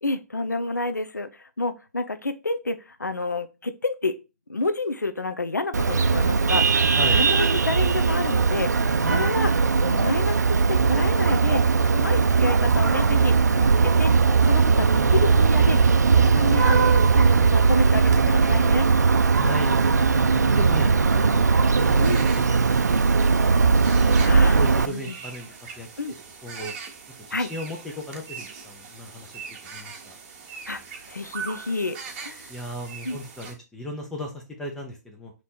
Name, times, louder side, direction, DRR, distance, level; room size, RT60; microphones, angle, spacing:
voice 1, 0.0-4.2 4.5-6.9 7.1-9.5 9.8-11.6 11.9-14.1 14.4-18.9 22.0-22.3 24.2-24.6 24.8-25.2 26.0-26.2 27.3-27.5 30.7-30.8 31.1-32.5 33.0-33.2, left 3 dB, 85° left, 10 dB, 0.5 m, -29 dB
Vehicle horn car horn honking, 5.7-24.9, right 5 dB, 70° right, 0.4 m, -19 dB
voice 2, 7.0-7.3 9.0-9.4 19.4-23.8 24.2-25.9 26.4-26.7 27.3-30.2 32.5-35.3, equal, 5° left, -1 dB, 0.5 m, -37 dB
sound 1, 21.8-33.5, right 5 dB, 35° right, 0.9 m, -41 dB
3.1 x 2.9 x 4.2 m, 0.29 s
figure-of-eight pair, 125°, 9 cm